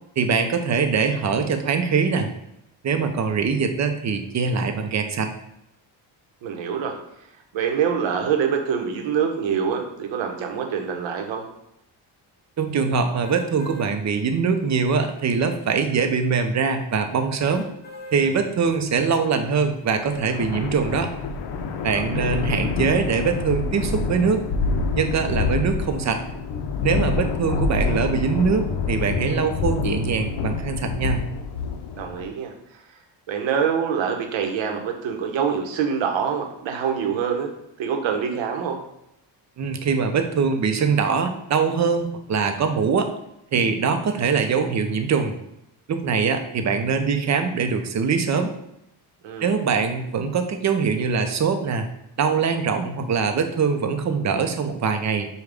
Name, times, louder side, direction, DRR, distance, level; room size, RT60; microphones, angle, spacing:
voice 1, 0.2-2.3 2.8-5.3 12.6-17.7 18.1-21.1 21.8-24.4 25.0-26.2 26.8-31.2 39.6-43.1 43.5-45.3 45.9-48.5 49.4-51.9 52.2-55.3, right 5 dB, 40° right, 7 dB, 0.6 m, -23 dB
voice 2, 6.4-6.9 7.5-11.4 21.9-22.4 31.9-32.8 33.3-37.5 37.8-38.8 49.2-49.6, right 7 dB, 75° right, 3 dB, 0.9 m, -25 dB
sound 1, 13.2-13.9 14.5-14.6 17.4-18.3 18.9-19.0, equal, 20° left, 0.8 m, -40 dB
sound 2, 20.1-32.3, left 4 dB, 60° left, 0.6 m, -27 dB
5.1 x 2.3 x 3.4 m, 0.82 s
cardioid pair, 85°, 46 cm